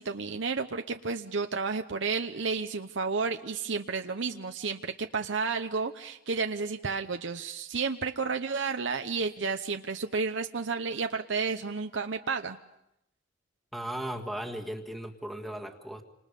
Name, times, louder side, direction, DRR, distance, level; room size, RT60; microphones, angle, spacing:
voice 1, 0.0-12.6, right 4 dB, 70° right, 6 dB, 0.9 m, -31 dB
voice 2, 13.7-16.0, right 1 dB, ahead, 3 dB, 1.8 m, -36 dB
29.5 x 26.5 x 5.3 m, 0.80 s
head